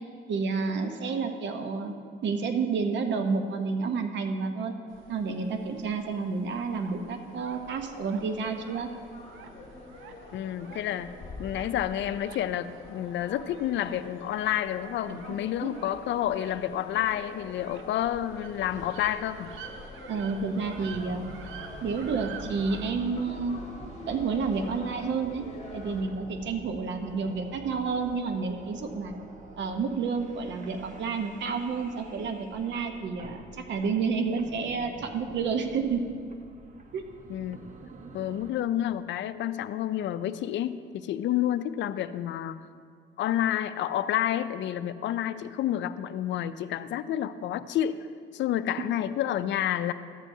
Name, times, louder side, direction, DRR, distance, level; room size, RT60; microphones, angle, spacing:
voice 1, 0.3-1.9 2.2-4.7 5.1-8.9 15.1-15.7 20.1-21.2 21.8-23.6 24.1-29.1 29.6-36.1 36.9-37.0, right 5 dB, 65° right, 5 dB, 0.9 m, -30 dB
sound 1, 4.9-22.9, right 6 dB, 90° right, 0.6 m, -49 dB
sound 2, 7.5-26.0, left 2 dB, 35° left, 1.5 m, -46 dB
voice 2, 10.3-11.1 11.4-19.5 37.3-37.6 38.1-42.6 43.2-48.0 48.3-49.9, left 11 dB, 70° left, 13 dB, 0.4 m, -29 dB
sound 3, 20.6-38.5, right 2 dB, 40° right, 0.9 m, -47 dB
13.0 x 8.8 x 2.7 m, 2.1 s
cardioid pair, 90°, 20 cm